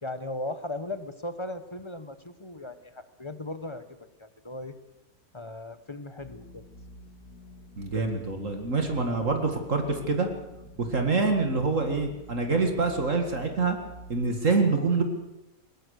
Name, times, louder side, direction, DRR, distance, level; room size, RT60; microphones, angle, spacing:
voice 1, 0.0-4.7 5.3-6.6, left 1 dB, 20° left, 11 dB, 1.1 m, -37 dB
sound 1, 6.2-14.2, equal, 75° left, 2.5 m, -48 dB
voice 2, 7.8-10.3 10.8-13.8 14.1-15.0, right 3 dB, 55° right, 4 dB, 2.4 m, -26 dB
21.5 x 19.5 x 6.6 m, 0.97 s
omnidirectional pair, 1.6 m